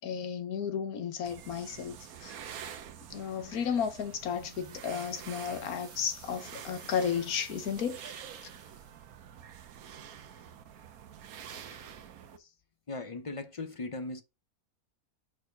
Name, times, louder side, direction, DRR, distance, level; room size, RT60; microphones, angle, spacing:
voice 1, 0.0-2.4 3.1-8.0 11.5-11.8, left 7 dB, 80° left, 1.4 m, -33 dB
sound 1, 1.2-12.4, right 9 dB, 80° right, 1.3 m, -47 dB
sound 2, 4.0-9.0, right 5 dB, 55° right, 1.5 m, -54 dB
voice 2, 12.9-14.2, left 3 dB, 45° left, 0.4 m, -38 dB
5.0 x 4.6 x 5.1 m
omnidirectional pair, 1.5 m